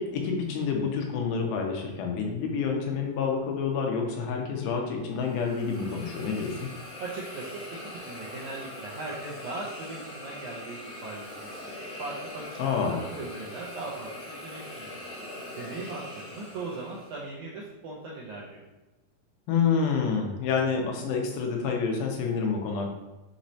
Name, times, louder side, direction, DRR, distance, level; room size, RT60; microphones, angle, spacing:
voice 1, 0.0-6.7 12.6-13.0 19.5-22.9, left 5 dB, 85° left, 1 dB, 2.5 m, -28 dB
Hiss, 5.1-17.2, left 1 dB, 70° left, 1.1 m, -42 dB
voice 2, 7.0-12.6 12.8-15.0 15.6-18.6, right 3 dB, 80° right, -4 dB, 1.7 m, -39 dB
6.1 x 3.1 x 2.7 m, 1.1 s
omnidirectional pair, 4.1 m